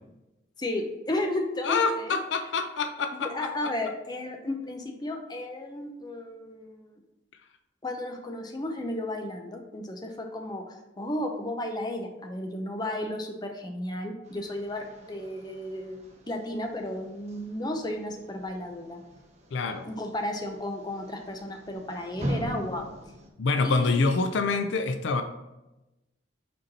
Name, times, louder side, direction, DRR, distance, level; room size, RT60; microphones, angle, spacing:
voice 1, 0.6-2.2 3.1-7.0 7.8-19.0 19.8-23.1 23.6-24.3, left 1 dB, 20° left, 3 dB, 0.6 m, -34 dB
voice 2, 1.6-3.3 19.5-19.9 23.4-25.2, left 4 dB, 65° left, 8 dB, 0.4 m, -26 dB
sound 1, 14.2-23.3, equal, 35° right, 0.7 m, -41 dB
5.3 x 4.3 x 4.1 m, 0.97 s
head